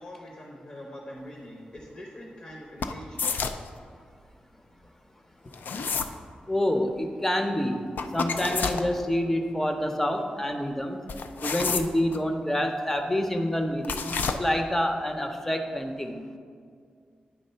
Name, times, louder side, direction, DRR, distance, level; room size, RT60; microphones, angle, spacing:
voice 1, 0.0-3.4, equal, 40° left, 0 dB, 0.8 m, -43 dB
sound 1, 2.8-3.7 5.5-6.1 8.0-8.9 11.1-12.2 13.8-14.4, left 5 dB, 80° left, 0.4 m, -29 dB
voice 2, 6.5-7.9 8.1-11.0 11.4-14.0 14.4-16.2, left 1 dB, 10° left, 5 dB, 0.6 m, -27 dB
9.1 x 3.6 x 5.5 m, 2.2 s
wide cardioid pair, 145°, 3 cm